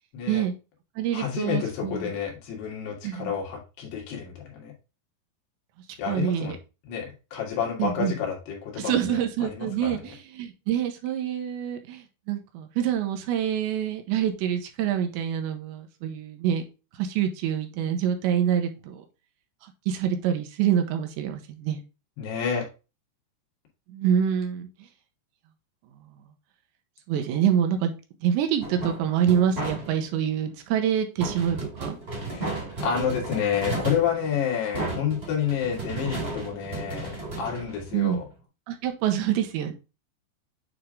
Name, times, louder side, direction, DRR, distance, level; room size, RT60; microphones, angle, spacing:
voice 1, 0.1-0.4 1.1-4.7 6.0-6.5 6.9-10.0 22.2-22.7 32.3-38.3, left 8 dB, 65° left, 0 dB, 3.6 m, -29 dB
voice 2, 1.0-2.1 3.0-3.3 6.1-6.6 7.8-8.2 8.8-16.6 17.0-19.0 19.9-21.8 23.9-24.7 27.1-27.9 28.2-32.0 37.9-38.2 38.7-39.7, right 9 dB, 80° right, 6 dB, 3.0 m, -26 dB
sound 1, 28.6-30.2 31.2-38.3, right 3 dB, 20° right, 1.6 m, -34 dB
8.7 x 3.4 x 3.6 m, 0.29 s
omnidirectional pair, 5.3 m